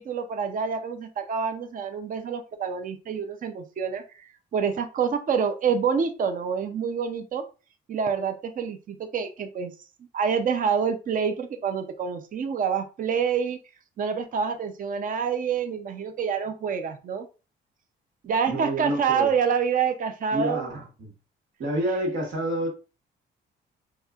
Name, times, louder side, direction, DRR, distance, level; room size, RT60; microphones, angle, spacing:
voice 1, 0.0-7.4 7.9-9.7 10.1-13.6 14.0-17.3 18.2-20.7, right 6 dB, 45° right, 7 dB, 0.5 m, -27 dB
voice 2, 18.5-19.3 20.3-21.1 21.6-22.7, right 1 dB, 75° right, -1 dB, 1.5 m, -28 dB
4.1 x 2.4 x 2.3 m, 0.32 s
cardioid pair, 90°, 20 cm